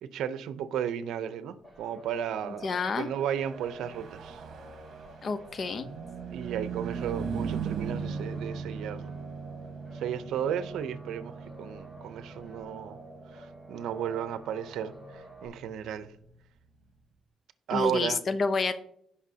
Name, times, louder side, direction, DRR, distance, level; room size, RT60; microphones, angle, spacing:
voice 1, 0.0-2.7 3.0-4.4 6.3-9.1 9.9-13.0 13.3-16.1 17.7-18.2, right 9 dB, 80° right, 13 dB, 0.7 m, -34 dB
sound 1, 1.6-15.5, right 1 dB, 20° left, 3.0 m, -50 dB
voice 2, 2.6-3.1 5.2-5.9 17.7-18.8, left 4 dB, 45° left, 12 dB, 0.8 m, -29 dB
Car passing by / Truck, 3.0-16.7, right 6 dB, 65° right, 1.2 m, -39 dB
16.5 x 5.6 x 2.8 m, 0.69 s
cardioid pair, 90°, 0 cm